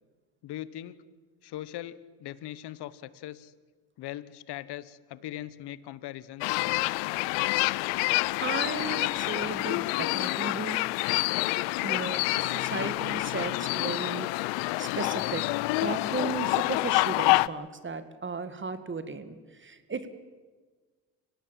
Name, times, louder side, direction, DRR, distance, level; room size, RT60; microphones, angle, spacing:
voice 1, 0.4-1.0 1.4-3.5 4.0-6.9, left 13 dB, 65° left, 17 dB, 1.3 m, -40 dB
sound 1, 6.4-17.5, left 22 dB, 80° left, 0.6 m, -27 dB
voice 2, 8.4-10.8 11.8-15.5 15.8-20.2, right 4 dB, 25° right, 11 dB, 2.1 m, -35 dB
25.5 x 17.5 x 7.6 m, 1.4 s
supercardioid pair, 80°, 43 cm